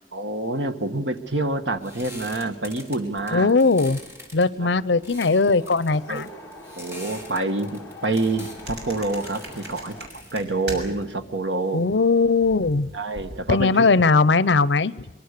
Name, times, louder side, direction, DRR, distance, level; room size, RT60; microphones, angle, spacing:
voice 1, 0.1-3.5 4.5-4.7 6.1-6.2 6.8-10.0 10.3-11.8 12.9-13.9, right 2 dB, 85° right, 8 dB, 1.6 m, -27 dB
sound 1, 1.1-11.5, left 1 dB, 15° right, 4.3 m, -44 dB
voice 2, 3.3-4.0 4.3-6.3 11.7-12.9 13.5-14.9, left 4 dB, 80° left, 19 dB, 0.7 m, -19 dB
Wind, 5.5-10.1, left 2 dB, 15° left, 2.8 m, -43 dB
sound 2, 8.6-11.1 11.4-13.7, right 1 dB, 65° right, 6.6 m, -40 dB
24.5 x 23.5 x 6.8 m, 1.0 s
head